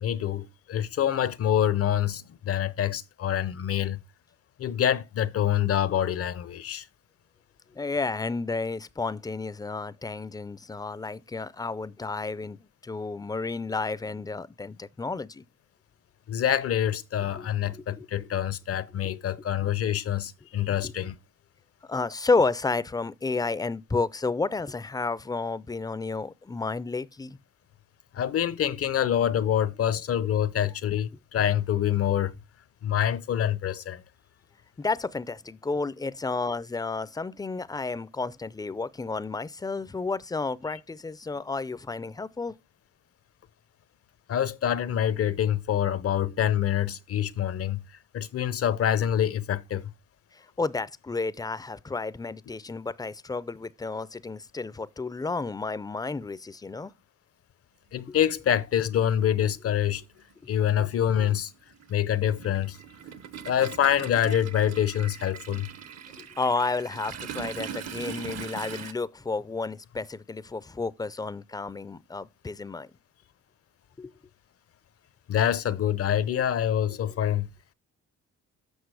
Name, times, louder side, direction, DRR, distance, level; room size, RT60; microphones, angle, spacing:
voice 1, 0.0-4.0 4.6-6.9 16.3-21.1 28.1-32.4 32.8-34.0 44.3-47.8 48.1-49.9 57.9-60.0 60.5-61.5 61.9-62.8 63.4-65.7 75.3-77.5, left 10 dB, 50° left, 0.7 m, -26 dB
voice 2, 7.7-15.4 17.3-17.5 17.7-18.0 20.8-20.9 21.8-27.4 34.8-42.6 50.3-56.9 58.1-58.2 60.8-60.9 66.4-72.9 74.0-74.1, left 3 dB, 15° left, 0.5 m, -31 dB
Toilet flush, 58.4-58.5 59.8-60.0 60.3-68.9, right 8 dB, 60° right, 1.0 m, -41 dB
8.1 x 6.1 x 4.8 m
cardioid pair, 90°, 30 cm